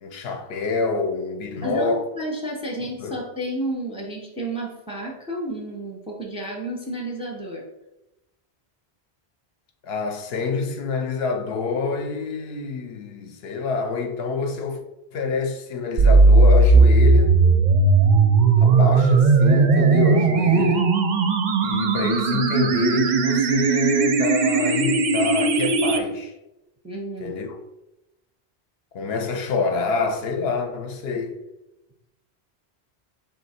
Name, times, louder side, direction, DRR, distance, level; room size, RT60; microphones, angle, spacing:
voice 1, 0.0-2.0 3.0-3.2 9.8-14.8 15.1-17.4 18.6-20.9 21.6-26.3 27.2-27.6 28.9-31.4, left 4 dB, 70° left, 0.8 m, -26 dB
voice 2, 1.6-7.6 26.8-27.3, right 1 dB, 5° right, 0.5 m, -31 dB
sound 1, 16.0-26.0, right 4 dB, 55° right, 0.5 m, -17 dB
3.6 x 2.7 x 4.2 m
omnidirectional pair, 1.1 m